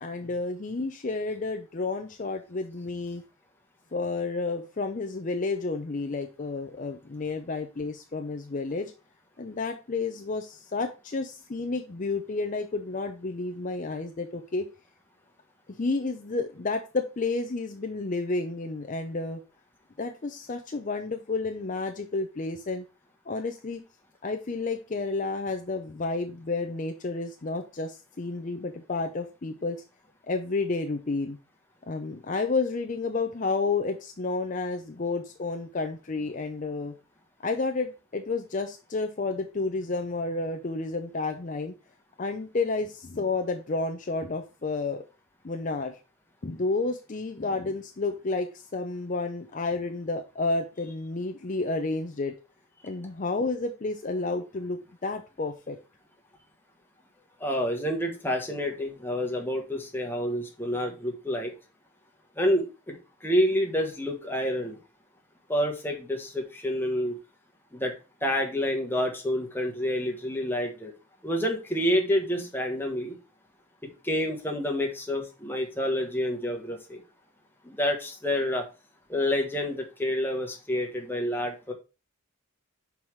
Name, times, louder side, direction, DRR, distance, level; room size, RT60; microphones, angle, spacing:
voice 1, 0.0-3.2 3.9-8.9 9.4-14.6 15.8-19.4 20.0-22.8 23.3-23.8 24.2-29.8 30.3-31.4 31.9-36.9 37.4-41.7 42.2-45.0 45.4-46.0 46.4-52.3 52.8-55.8, left 3 dB, 35° left, 5 dB, 0.5 m, -31 dB
voice 2, 57.4-61.5 62.4-63.0 63.2-64.8 65.5-67.2 67.7-67.9 68.2-70.9 71.2-73.1 74.0-77.0 77.6-78.7 79.1-81.7, equal, 10° left, 2 dB, 1.2 m, -28 dB
5.6 x 4.8 x 4.6 m, 0.31 s
head